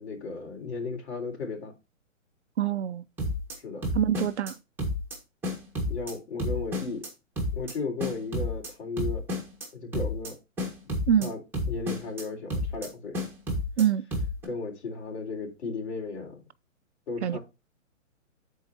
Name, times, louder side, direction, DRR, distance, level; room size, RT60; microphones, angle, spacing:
voice 1, 0.0-1.7 3.6-3.9 5.9-7.1 7.5-9.3 9.7-10.4 11.2-11.4 11.7-13.2 14.4-16.4 17.1-17.4, left 4 dB, 55° left, 3.9 m, -35 dB
voice 2, 2.6-3.1 3.9-4.6 11.1-11.3 13.8-14.1 17.2-17.4, right 9 dB, 60° right, 0.6 m, -25 dB
sound 1, 3.2-3.6 3.8-4.5 4.8-5.2 5.4-6.1 6.4-7.1 7.4-7.7 8.0-8.7 9.0-9.7 9.9-10.3 10.6-11.3 11.5-12.2 12.5-12.9 13.1-13.8 14.1-14.4, left 1 dB, 5° right, 1.5 m, -30 dB
13.5 x 4.7 x 2.7 m
hypercardioid pair, 160°, 39 cm